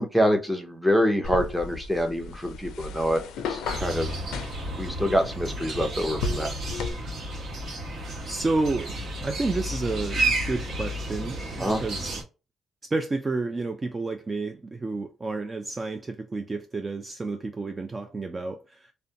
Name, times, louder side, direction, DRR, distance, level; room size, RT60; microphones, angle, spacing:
voice 1, 0.0-3.2 3.5-4.1 4.8-6.5 11.6-11.8, equal, ahead, 0.7 m, -25 dB
sound 1, 1.2-6.9, left 3 dB, 90° left, 0.4 m, -35 dB
sound 2, 3.7-12.2, right 1 dB, 70° right, 0.9 m, -32 dB
voice 2, 8.2-12.2 12.8-18.9, right 3 dB, 25° right, 0.3 m, -30 dB
2.5 x 2.1 x 2.6 m
cardioid pair, 90°, 0 cm